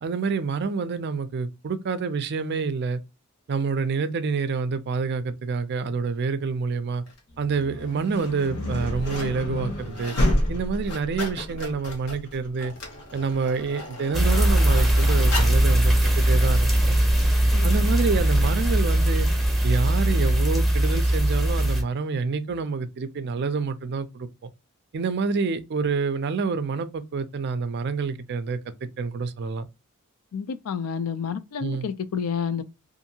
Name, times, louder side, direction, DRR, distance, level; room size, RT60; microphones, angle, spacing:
voice 1, 0.0-3.0 3.5-7.0 7.4-10.1 10.5-12.7 13.1-17.0 17.6-19.3 19.6-24.3 24.9-29.7 31.6-31.9, right 4 dB, 50° right, 0.4 m, -27 dB
sound 1, 7.1-7.2 7.9-8.3 8.7-9.4 9.7-10.4 10.7-15.7 16.3-16.4, left 2 dB, 85° left, 1.1 m, -37 dB
sound 2, 7.3-17.1, left 1 dB, 50° left, 0.9 m, -30 dB
sound 3, 14.1-21.8, right 1 dB, ahead, 0.7 m, -20 dB
voice 2, 30.3-32.6, left 7 dB, 70° left, 0.4 m, -29 dB
2.7 x 2.5 x 2.7 m
head